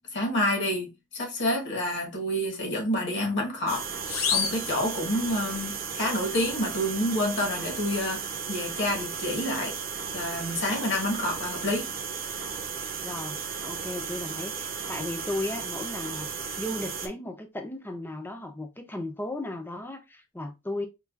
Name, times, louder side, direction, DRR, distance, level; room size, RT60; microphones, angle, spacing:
voice 1, 0.1-3.9 4.3-9.7 10.1-11.9, left 1 dB, 55° left, 1.4 m, -28 dB
sound 1, 3.7-17.1, right 6 dB, 45° right, 0.7 m, -35 dB
sound 2, 4.1-5.6, left 7 dB, 80° left, 0.7 m, -30 dB
voice 2, 13.0-16.3 16.6-20.9, left 1 dB, 10° left, 0.5 m, -35 dB
4.5 x 2.4 x 2.4 m
head